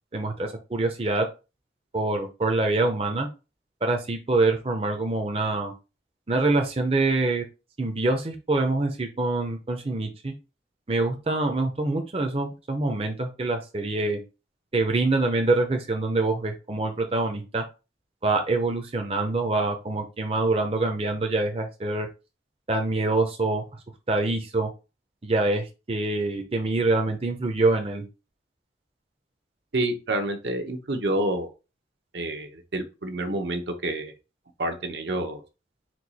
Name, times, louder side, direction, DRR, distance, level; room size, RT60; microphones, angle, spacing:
voice 1, 0.1-1.3 1.9-3.3 3.8-5.7 6.3-7.4 7.8-10.3 10.9-14.2 14.7-17.6 18.2-22.1 22.7-23.6 24.1-24.7 25.2-28.0, right 2 dB, 30° right, 4 dB, 0.6 m, -25 dB
voice 2, 29.7-31.5 32.1-34.1 34.6-35.4, right 1 dB, 70° right, 5 dB, 0.8 m, -28 dB
4.5 x 2.3 x 4.0 m, 0.29 s
head